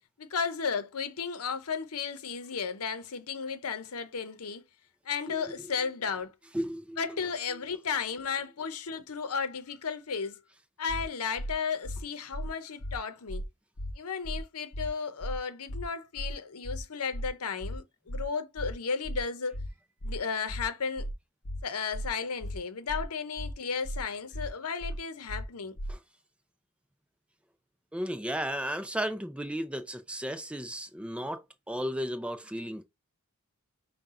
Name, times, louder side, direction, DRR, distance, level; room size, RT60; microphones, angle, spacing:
voice 1, 0.2-4.6 5.1-6.3 7.0-10.4 10.8-13.4 14.0-19.5 20.0-21.1 21.6-25.8, left 5 dB, 85° left, 0.8 m, -34 dB
voice 2, 6.5-7.0 25.9-26.0 27.9-32.8, equal, 5° right, 0.5 m, -34 dB
sound 1, 10.9-11.0 11.4-11.5 11.8-12.0 12.3-12.5 12.8-13.0 13.3-13.4 13.8-13.9 14.2-14.4 14.7-14.9 15.2-15.4 15.7-15.8 16.2-16.3 16.6-16.8 17.1-17.3 17.6-17.8 18.1-18.2 18.6-18.7 19.0-19.2 19.5-19.7 20.0-20.2 20.5-20.6 21.0-21.1 21.4-21.6 21.9-22.1 22.4-22.6 22.9-23.0 23.4-23.5 23.8-24.0 24.3-24.5 24.8-25.0 25.3-25.4 25.8-25.9, equal, 50° left, 0.7 m, -35 dB
5.5 x 2.3 x 3.7 m
head